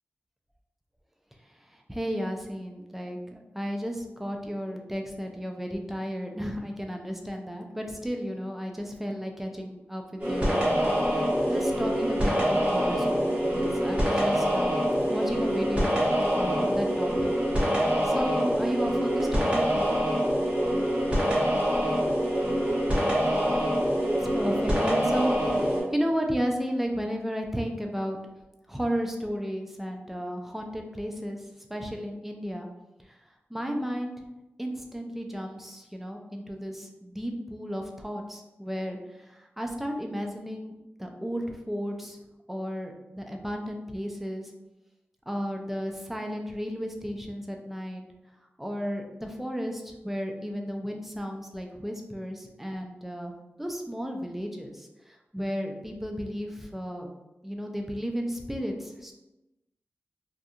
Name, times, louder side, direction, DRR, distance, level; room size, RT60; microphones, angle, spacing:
voice 1, 1.9-14.8 15.1-16.0 16.4-19.9 24.3-28.2 28.7-31.4 31.7-32.7 33.5-34.2 34.6-40.7 41.0-42.2 42.5-44.5 45.3-48.0 48.6-53.3 53.6-57.1 57.4-59.1, equal, 5° right, 2 dB, 0.4 m, -33 dB
sound 1, 10.2-25.8, equal, 30° right, 1.2 m, -25 dB
2.7 x 2.3 x 2.4 m, 0.98 s
wide cardioid pair, 75°, 4 cm